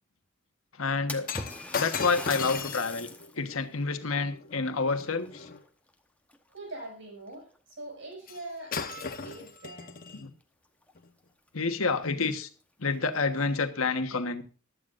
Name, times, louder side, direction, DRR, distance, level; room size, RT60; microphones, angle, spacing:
voice 1, 0.8-1.3 1.7-3.1 3.4-5.5 10.2-10.3 11.5-12.5 12.8-14.4, left 4 dB, 85° left, 7 dB, 1.3 m, -28 dB
Splash splatter, 1.1-3.4 3.9-4.0 4.9-5.9 6.3-6.8 7.6-7.7 8.1-8.2 10.4-10.5 10.8-10.9 11.5-11.6 12.0-12.1 12.8-13.4, left 2 dB, 5° left, 1.0 m, -42 dB
Shatter, 1.2-5.6 8.3-8.4 8.7-10.2 11.0-11.1, left 5 dB, 45° left, 1.1 m, -37 dB
voice 2, 6.5-9.9, right 2 dB, 65° right, 1 dB, 6.3 m, -43 dB
15.5 x 11.5 x 2.5 m, 0.37 s
head